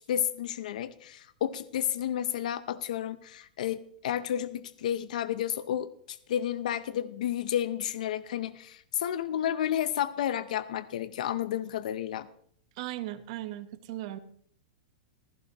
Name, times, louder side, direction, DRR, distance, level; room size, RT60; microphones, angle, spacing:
voice 1, 0.1-12.3, left 10 dB, 65° left, 14 dB, 0.7 m, -31 dB
voice 2, 12.7-14.2, right 15 dB, 45° right, 11 dB, 1.1 m, -37 dB
15.5 x 14.0 x 3.0 m, 0.63 s
supercardioid pair, 165°, 4 cm